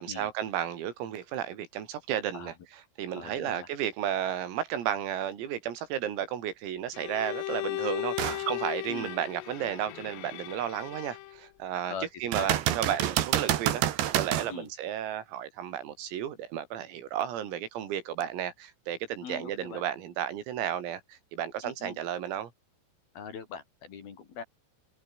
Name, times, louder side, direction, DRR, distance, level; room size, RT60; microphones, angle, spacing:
voice 1, 0.0-2.5 3.0-11.9 12.2-22.5, right 10 dB, 85° right, 5.7 m, -33 dB
voice 2, 3.1-3.7 8.9-9.2 11.9-12.1 12.3-12.5 14.5-14.7 19.2-19.8 21.6-22.0 23.1-24.4, left 6 dB, 50° left, 4.7 m, -41 dB
Bowed string instrument, 6.9-11.5, left 16 dB, 80° left, 3.6 m, -36 dB
sound 1, 8.2-8.5 9.0-9.1 12.3-14.5 18.2-18.3, right 12 dB, 65° right, 3.5 m, -28 dB
omnidirectional pair, 5.9 m